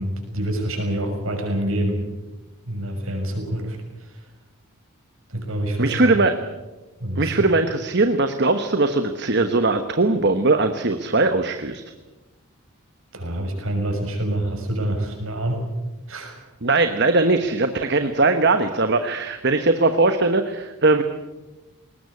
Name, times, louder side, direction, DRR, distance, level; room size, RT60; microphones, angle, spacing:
voice 1, 0.0-2.1 2.7-4.3 5.3-6.1 7.0-7.3 13.1-15.7 16.1-16.4, right 1 dB, 65° right, 3 dB, 6.2 m, -27 dB
voice 2, 5.8-6.4 7.2-11.8 16.6-21.0, right 3 dB, 50° right, 7 dB, 1.1 m, -20 dB
21.0 x 19.0 x 8.4 m, 1.1 s
head